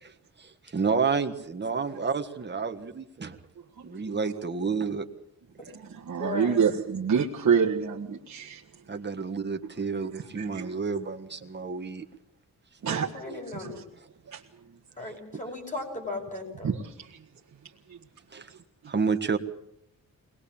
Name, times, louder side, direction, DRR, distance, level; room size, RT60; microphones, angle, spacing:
voice 1, 0.4-3.4 3.8-5.1 8.9-12.0 18.3-18.5 18.9-19.4, right 5 dB, 30° right, 6 dB, 1.5 m, -30 dB
voice 2, 5.7-8.6 10.2-10.7 12.8-13.8 14.3-14.4 16.6-17.2 17.9-18.0 18.5-18.6 18.8-19.0, right 6 dB, 55° right, -3 dB, 1.6 m, -28 dB
voice 3, 6.2-6.6 12.8-13.8 15.0-16.7, left 2 dB, 20° left, 2 dB, 6.0 m, -36 dB
23.0 x 20.5 x 7.2 m, 0.77 s
wide cardioid pair, 175°, 35 cm